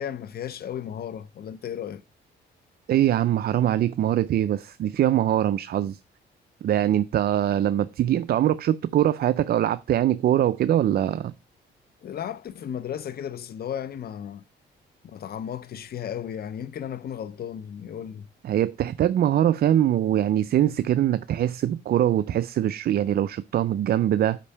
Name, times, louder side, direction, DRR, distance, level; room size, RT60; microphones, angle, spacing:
voice 1, 0.0-2.0 12.0-14.4 15.0-18.3, left 9 dB, 50° left, 0.6 m, -34 dB
voice 2, 2.9-6.0 6.6-11.3 18.4-24.4, right 11 dB, 50° right, 0.4 m, -23 dB
5.2 x 5.2 x 5.4 m
cardioid pair, 90°, 20 cm